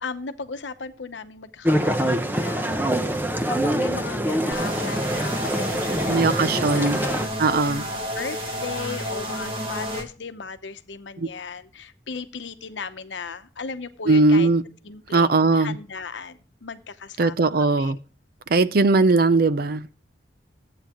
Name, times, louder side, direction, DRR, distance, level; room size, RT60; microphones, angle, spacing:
voice 1, 0.0-3.2 3.4-14.5 14.8-18.0, left 4 dB, 80° left, 0.8 m, -37 dB
sound 1, 1.7-7.3, right 1 dB, 10° right, 0.8 m, -24 dB
sound 2, 4.5-10.0, equal, 30° right, 2.1 m, -31 dB
voice 2, 6.0-7.0 7.4-7.8 11.2-11.3 14.1-14.6 15.1-15.8 17.2-18.0 18.5-20.0, right 3 dB, 55° right, 0.6 m, -19 dB
13.5 x 8.8 x 3.0 m
head